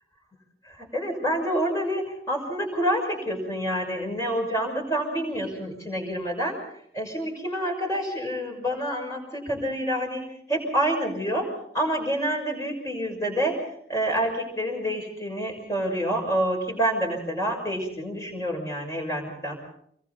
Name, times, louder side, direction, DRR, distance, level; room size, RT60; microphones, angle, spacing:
voice 1, 0.6-6.6 6.9-19.6, equal, 20° left, 2 dB, 6.1 m, -28 dB
27.0 x 22.5 x 4.2 m, 0.67 s
head